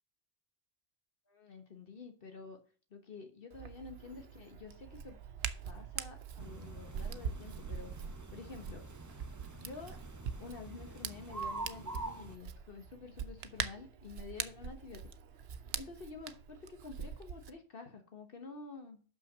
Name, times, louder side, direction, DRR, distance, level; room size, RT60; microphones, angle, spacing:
voice 1, 1.3-2.6 2.9-5.2 5.6-7.9 8.3-8.9 9.6-10.0 10.4-15.1 15.7-19.0, left 4 dB, 65° left, 6 dB, 1.3 m, -49 dB
Hands, 3.5-17.5, right 7 dB, 80° right, 0.9 m, -44 dB
sound 1, 6.4-12.4, right 2 dB, 20° right, 0.8 m, -46 dB
6.3 x 5.8 x 7.1 m, 0.42 s
omnidirectional pair, 1.0 m